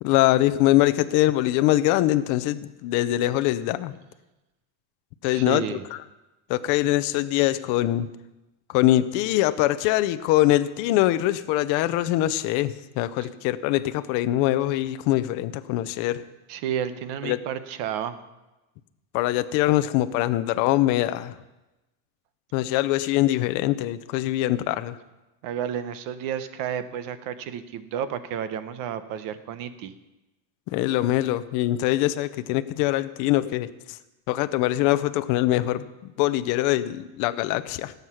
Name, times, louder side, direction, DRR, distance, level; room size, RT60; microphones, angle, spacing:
voice 1, 0.0-4.0 5.2-5.8 6.5-8.1 8.7-16.2 17.2-17.4 19.1-21.4 22.5-25.0 30.7-34.0 34.3-37.9, left 15 dB, 40° left, 12 dB, 0.6 m, -23 dB
voice 2, 5.3-5.8 13.2-13.3 16.5-18.2 25.4-29.9, right 9 dB, 45° right, 12 dB, 0.9 m, -31 dB
17.0 x 8.1 x 5.7 m, 1.0 s
cardioid pair, 170°, 49 cm